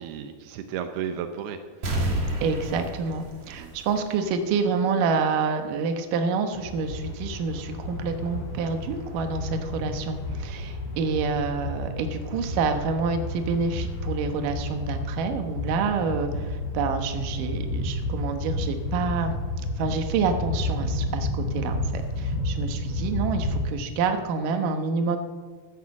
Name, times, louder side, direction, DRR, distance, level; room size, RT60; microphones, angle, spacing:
voice 1, 0.0-1.9 3.6-3.7, right 8 dB, 85° right, 7 dB, 2.8 m, -34 dB
sound 1, 1.8-4.4 4.8-4.9, right 1 dB, 50° right, 3.5 m, -30 dB
voice 2, 2.4-19.4 19.8-25.2, right 5 dB, 65° right, 6 dB, 2.7 m, -28 dB
sound 2, 6.5-23.7, left 2 dB, 40° left, 7.0 m, -31 dB
13.5 x 11.5 x 7.2 m, 1.5 s
omnidirectional pair, 4.4 m